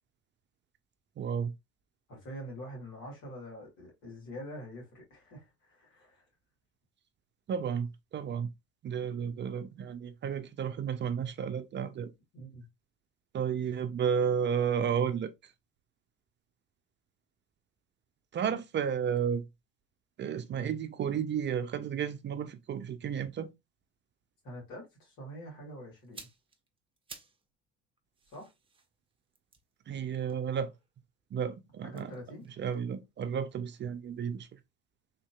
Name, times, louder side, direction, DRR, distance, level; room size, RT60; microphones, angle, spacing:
voice 1, 1.2-1.5 7.5-7.9 8.1-8.5 8.8-12.1 13.3-15.3 18.3-19.4 20.2-23.5 29.9-30.7 31.3-32.1 32.6-34.5, right 7 dB, 35° right, 0.4 m, -32 dB
voice 2, 2.1-6.3 12.3-12.7 24.4-26.3 28.3-28.5 31.8-32.4, equal, 65° left, 2.2 m, -45 dB
sound 1, 26.0-27.5 27.8-31.0 31.8-33.9 34.2-34.3, right 4 dB, 15° right, 0.8 m, -55 dB
3.6 x 2.7 x 2.3 m
hypercardioid pair, 65°, 31 cm